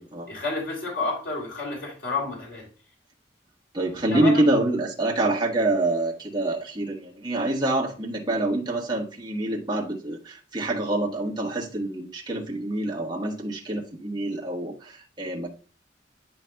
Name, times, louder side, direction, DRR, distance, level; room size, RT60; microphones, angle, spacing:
voice 1, 0.3-2.6 4.1-4.4, left 3 dB, 80° left, -2 dB, 2.9 m, -30 dB
voice 2, 3.7-15.5, right 2 dB, 25° right, -4 dB, 1.3 m, -26 dB
9.9 x 4.9 x 2.3 m, 0.38 s
head